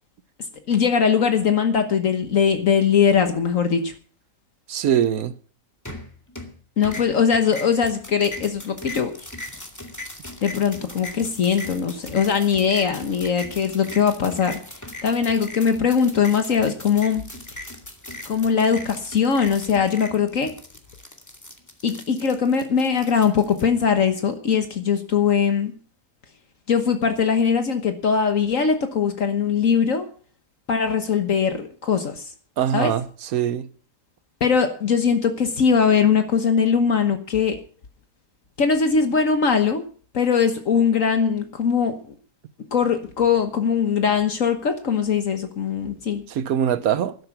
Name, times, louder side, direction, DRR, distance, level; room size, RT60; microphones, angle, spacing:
voice 1, 0.7-3.9 6.8-9.1 10.4-14.6 15.0-17.2 18.3-20.5 21.8-25.7 26.7-30.1 30.7-32.3 32.7-32.9 34.4-37.6 38.6-39.8 40.1-42.1 42.7-46.2, left 6 dB, 65° left, 1.6 m, -21 dB
voice 2, 4.7-5.3 32.6-33.7 46.3-47.2, right 9 dB, 85° right, 1.3 m, -22 dB
sound 1, 5.9-6.6 6.8-23.6, left 2 dB, 10° left, 2.1 m, -39 dB
12.5 x 12.0 x 5.9 m
omnidirectional pair, 1.5 m